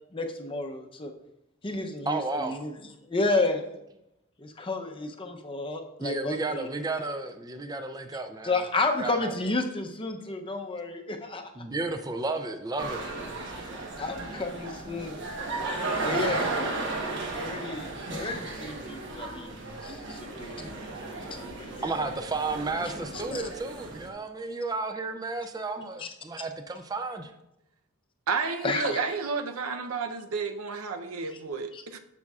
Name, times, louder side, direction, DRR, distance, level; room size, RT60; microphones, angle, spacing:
voice 1, 0.1-1.1 1.6-2.7 3.0-3.7 4.4-6.7 8.4-11.5 13.6-13.7 14.0-15.2 16.0-16.5 17.3-19.6 19.8-20.7 21.2-21.9 23.0-23.4 26.0-26.1 28.6-29.0 31.7-31.8, left 3 dB, 25° left, 0.6 m, -31 dB
voice 2, 2.1-2.6 6.0-8.6 9.0-9.3 11.6-13.0 21.8-27.3, right 3 dB, 15° right, 0.4 m, -32 dB
sound 1, 12.8-24.1, right 3 dB, 55° right, 1.1 m, -35 dB
voice 3, 28.3-32.0, right 4 dB, 85° right, 0.6 m, -31 dB
10.5 x 7.2 x 2.4 m
head